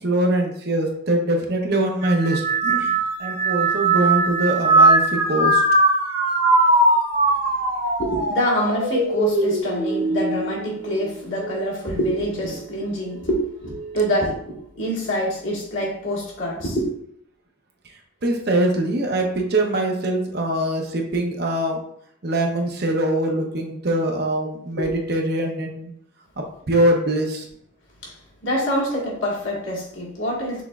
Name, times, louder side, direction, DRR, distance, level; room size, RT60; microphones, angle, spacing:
voice 1, 0.0-5.6 18.2-21.8 22.2-25.9 26.4-27.5, right 1 dB, 55° right, 2 dB, 0.8 m, -23 dB
sound 1, 2.0-11.6 12.1-12.7 13.6-14.0, right 2 dB, 75° right, 1.4 m, -21 dB
voice 2, 8.0-16.9 24.7-24.9 28.0-28.1 28.4-30.6, equal, 75° left, -4 dB, 1.7 m, -26 dB
6.0 x 3.4 x 2.4 m, 0.67 s
head